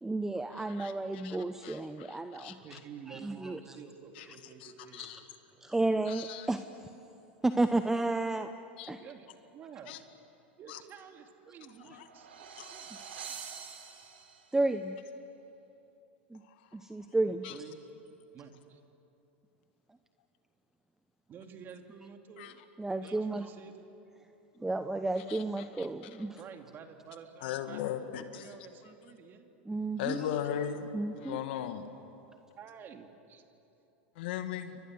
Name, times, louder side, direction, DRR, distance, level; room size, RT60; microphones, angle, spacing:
voice 1, 0.0-2.6 3.1-3.6 5.6-6.9 7.4-8.5 8.9-9.0 14.5-15.0 16.3-16.4 16.7-17.5 22.8-23.5 24.6-26.4 29.7-30.3 30.9-31.4, right 2 dB, 10° right, 9 dB, 0.9 m, -32 dB
voice 2, 0.6-2.6 4.2-4.3 4.6-5.2 6.1-6.5 8.8-8.9 9.9-10.0 10.7-10.8 11.9-12.1 12.6-12.7 17.4-17.5 22.4-22.5 25.3-25.4 25.8-25.9 27.4-28.5 30.0-30.9 31.2-31.9 34.2-34.8, left 10 dB, 70° left, 8 dB, 2.0 m, -38 dB
voice 3, 2.6-5.1 5.5-5.6 9.0-10.0 10.6-12.9 13.3-13.4 17.5-17.8 18.3-18.8 21.3-22.6 23.0-23.8 26.4-27.9 28.3-29.5 30.1-30.8 32.6-33.4, right 7 dB, 35° right, 5 dB, 2.7 m, -50 dB
sound 1, 11.6-14.6, right 6 dB, 80° right, 3.7 m, -46 dB
29.5 x 24.5 x 7.8 m, 3.0 s
hypercardioid pair, 100°, 6 cm